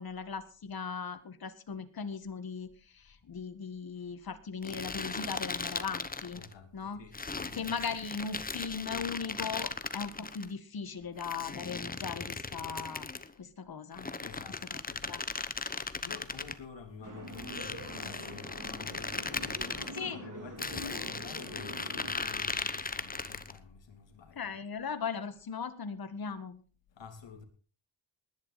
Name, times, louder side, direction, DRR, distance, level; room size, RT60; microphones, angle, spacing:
voice 1, 0.0-6.4 6.7-7.0 7.5-13.1 13.4-14.1 14.7-14.8 15.1-15.2 20.0-20.2 24.4-26.6, left 5 dB, 45° left, 1.9 m, -38 dB
sound 1, 4.6-6.5 7.1-10.5 11.2-13.3 13.9-16.6 17.3-20.0 20.6-23.6, left 4 dB, 20° left, 0.9 m, -38 dB
voice 2, 6.3-7.8 8.8-8.9 9.2-9.4 10.9-11.1 14.2-24.5 26.9-27.4, left 5 dB, 65° left, 3.5 m, -50 dB
sound 2, 17.0-22.1, right 1 dB, 40° right, 4.4 m, -45 dB
19.5 x 10.5 x 4.3 m
wide cardioid pair, 120°, 48 cm